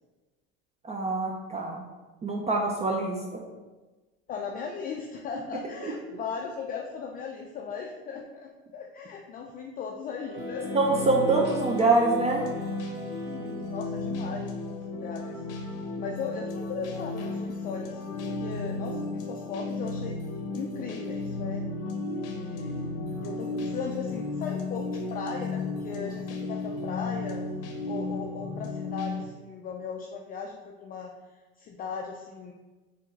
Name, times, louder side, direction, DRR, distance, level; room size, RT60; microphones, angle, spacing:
voice 1, 0.8-1.8 2.2-3.4 5.8-5.9 10.7-12.4, right 3 dB, 20° right, 0 dB, 0.5 m, -25 dB
voice 2, 4.3-10.7 13.1-15.4 16.0-20.2 20.5-21.6 22.1-27.4 27.9-31.1 31.6-32.5, left 5 dB, 30° left, 1 dB, 0.4 m, -38 dB
sound 1, 10.1-14.0, right 9 dB, 80° right, 1.5 m, -42 dB
sound 2, 10.4-29.2, left 3 dB, 55° left, 0.7 m, -34 dB
4.5 x 3.6 x 3.1 m, 1.2 s
supercardioid pair, 105°, 29 cm